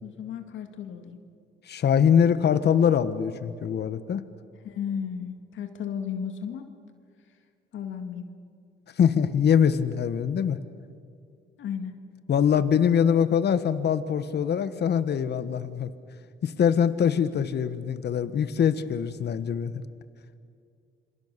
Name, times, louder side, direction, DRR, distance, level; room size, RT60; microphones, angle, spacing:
voice 1, 0.0-1.2 4.6-6.7 7.7-8.2 11.6-11.9, left 7 dB, 75° left, 7 dB, 2.0 m, -34 dB
voice 2, 1.7-4.2 9.0-10.6 12.3-15.9 16.4-19.8, left 8 dB, 55° left, 13 dB, 1.3 m, -23 dB
27.5 x 26.0 x 6.8 m, 2.3 s
cardioid pair, 90°, 20 cm